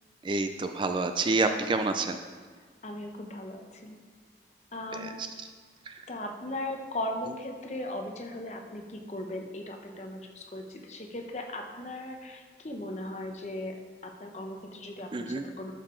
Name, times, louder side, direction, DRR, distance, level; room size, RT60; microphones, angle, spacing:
voice 1, 0.2-2.2 4.9-5.1 5.9-6.0 15.1-15.4, right 3 dB, 25° right, 7 dB, 0.3 m, -28 dB
voice 2, 2.8-4.0 4.7-5.2 6.1-13.7 14.0-15.7, left 1 dB, 40° left, 3 dB, 0.9 m, -38 dB
11.5 x 6.7 x 3.8 m, 1.5 s
head